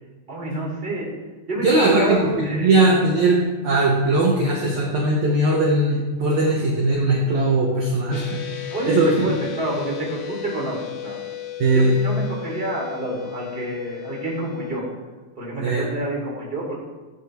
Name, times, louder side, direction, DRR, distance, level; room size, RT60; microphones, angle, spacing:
voice 1, 0.3-1.1 1.5-2.9 8.7-11.2 11.7-14.8 15.4-16.8, right 1 dB, 15° right, -3 dB, 3.2 m, -28 dB
voice 2, 1.6-8.4 8.8-9.3 11.6-12.0 15.6-15.8, right 2 dB, 60° right, -2 dB, 2.2 m, -19 dB
sound 1, 8.1-14.8, left 12 dB, 85° left, 1.4 m, -35 dB
16.5 x 8.3 x 4.7 m, 1.2 s
omnidirectional pair, 5.0 m